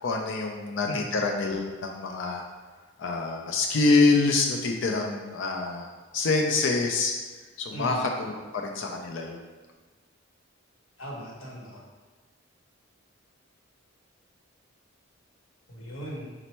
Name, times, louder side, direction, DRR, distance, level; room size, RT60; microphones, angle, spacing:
voice 1, 0.0-2.4 3.0-7.1 7.6-9.4, left 3 dB, 65° left, 2 dB, 0.4 m, -26 dB
voice 2, 0.8-1.2 7.7-8.1 11.0-11.8 15.7-16.3, equal, 85° left, -4 dB, 0.9 m, -38 dB
4.3 x 2.0 x 4.2 m, 1.4 s
head